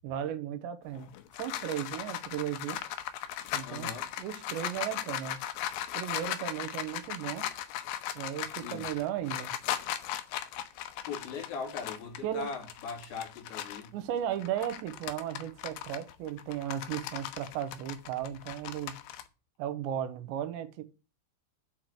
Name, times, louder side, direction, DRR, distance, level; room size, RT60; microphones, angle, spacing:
voice 1, 0.0-1.1 1.4-2.8 3.5-3.9 4.2-5.4 5.9-7.5 8.2-9.5 12.2-12.5 13.9-19.0 19.6-20.8, right 10 dB, 80° right, 3.1 m, -35 dB
sound 1, 0.9-13.9 14.3-19.2, left 11 dB, 85° left, 2.1 m, -38 dB
voice 2, 3.6-4.1 8.6-8.9 11.1-14.0, left 5 dB, 55° left, 4.2 m, -39 dB
9.1 x 4.6 x 7.7 m
omnidirectional pair, 5.3 m